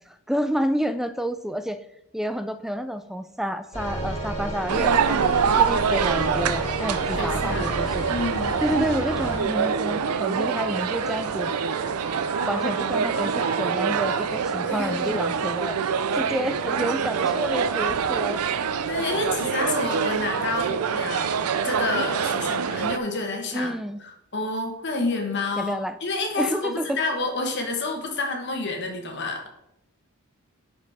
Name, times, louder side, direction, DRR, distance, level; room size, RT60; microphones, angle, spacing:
voice 1, 0.1-1.8 2.1-8.0 8.6-11.5 12.5-15.8 16.1-18.4 23.5-24.0 25.6-26.0 26.4-27.0, equal, ahead, 10 dB, 0.3 m, -29 dB
sound 1, 3.7-9.4, equal, 25° left, 2.2 m, -32 dB
sound 2, 4.7-23.0, right 6 dB, 80° right, 0.5 m, -25 dB
sound 3, 5.4-20.4, right 1 dB, 80° left, 1.8 m, -44 dB
voice 2, 7.1-7.7 8.1-8.6 14.7-15.2 18.9-23.7 24.3-25.7 26.0-29.5, left 2 dB, 50° left, 3 dB, 1.3 m, -29 dB
10.5 x 4.4 x 4.1 m, 0.84 s
head